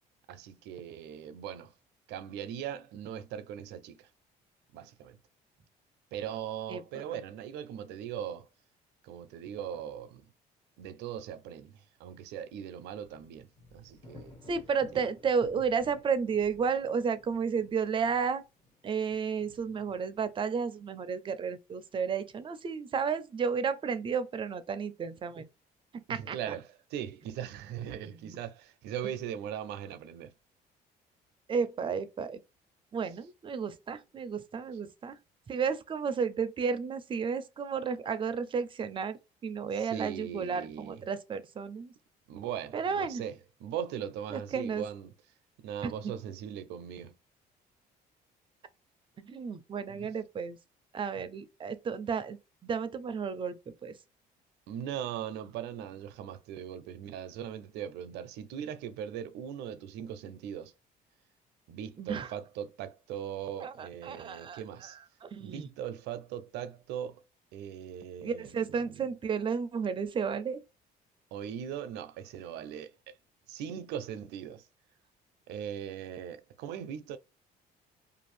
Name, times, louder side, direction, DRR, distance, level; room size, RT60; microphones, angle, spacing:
voice 1, 0.3-1.7 2.1-4.1 4.7-5.2 6.1-8.5 9.0-10.3 10.8-14.4 14.9-15.0 26.1-30.3 39.7-41.0 42.3-45.1 45.6-47.1 49.9-50.1 54.7-60.7 61.7-65.0 65.4-67.2 67.5-69.0 71.3-73.1 73.5-74.6 75.5-77.2, right 9 dB, 85° right, 0.5 m, -40 dB
voice 2, 6.7-7.0 14.5-18.4 18.8-25.5 25.9-26.5 28.1-28.4 31.5-32.4 32.9-35.2 35.5-41.9 42.7-43.2 44.3-44.8 45.8-45.9 49.2-50.6 50.9-53.9 62.0-62.3 63.6-64.9 65.2-65.7 68.2-70.6, right 6 dB, 30° right, 0.4 m, -32 dB
sound 1, 13.0-20.5, left 3 dB, 40° left, 1.5 m, -55 dB
2.6 x 2.4 x 3.1 m
cardioid pair, 110°, 17 cm